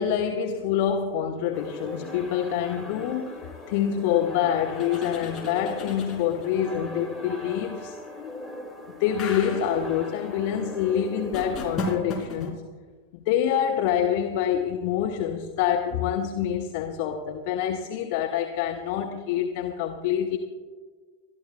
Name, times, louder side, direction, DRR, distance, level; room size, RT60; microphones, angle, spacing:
voice 1, 0.0-8.0 9.0-12.6 13.1-20.4, left 9 dB, 50° left, 4 dB, 0.9 m, -26 dB
sound 1, 1.5-12.0, left 1 dB, 5° left, 1.5 m, -39 dB
sound 2, 4.7-6.6 9.2-9.8 11.3-12.5, left 2 dB, 30° left, 3.9 m, -35 dB
28.0 x 13.0 x 2.3 m, 1.5 s
figure-of-eight pair, 90°, 0 cm